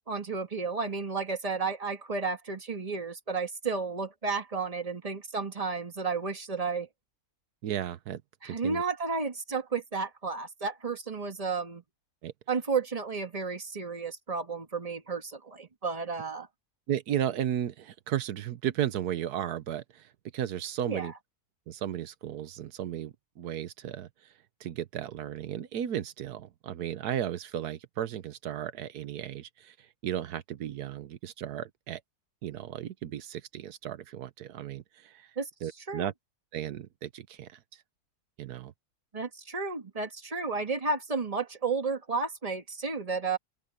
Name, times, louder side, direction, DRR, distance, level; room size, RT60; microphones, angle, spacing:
voice 1, 0.1-6.9 8.4-11.8 12.5-16.5 20.9-21.1 35.4-35.5 35.9-36.1 39.1-43.4, right 4 dB, 25° right, 1.8 m, -32 dB
voice 2, 7.6-8.8 12.2-12.3 16.9-21.1 21.7-24.1 24.6-29.7 30.0-32.0 32.4-35.3 35.6-36.1 36.5-37.6 38.4-38.7, right 10 dB, 85° right, 1.4 m, -34 dB
open air
omnidirectional pair, 1.6 m